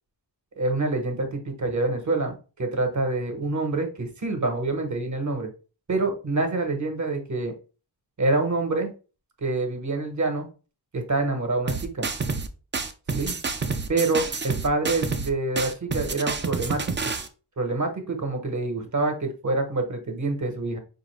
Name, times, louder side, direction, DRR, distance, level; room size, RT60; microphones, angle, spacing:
voice 1, 0.6-5.5 5.9-7.5 8.2-8.9 9.4-10.5 10.9-12.1 13.1-13.4 13.9-17.1 17.6-20.8, right 2 dB, 45° right, 5 dB, 0.9 m, -26 dB
sound 1, 11.7-12.5 12.7-15.3 15.6-17.3, right 4 dB, 30° right, 0.4 m, -28 dB
4.7 x 2.6 x 3.0 m, 0.34 s
wide cardioid pair, 115°, 41 cm